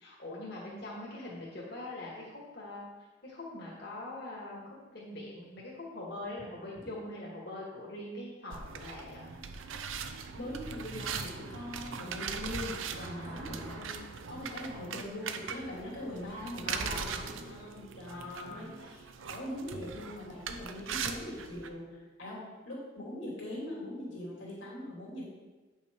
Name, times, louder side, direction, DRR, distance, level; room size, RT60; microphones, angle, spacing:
voice 1, 0.0-2.8 3.2-9.2 13.0-13.9 16.6-17.3 18.1-18.7, left 2 dB, 55° left, -5 dB, 1.8 m, -43 dB
sound 1, 8.5-21.7, right 6 dB, 90° right, 0.6 m, -40 dB
voice 2, 10.3-25.3, left 1 dB, 75° left, -4 dB, 2.7 m, -42 dB
8.3 x 5.7 x 4.5 m, 1.2 s
head